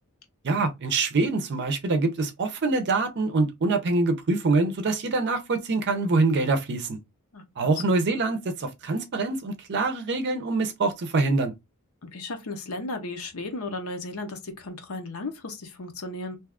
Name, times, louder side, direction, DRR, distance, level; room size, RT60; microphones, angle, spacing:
voice 1, 0.4-7.0 7.6-11.5, right 3 dB, 55° right, 0.5 m, -25 dB
voice 2, 7.3-7.7 12.0-16.4, left 2 dB, 75° left, 0.8 m, -35 dB
2.7 x 2.3 x 3.5 m
head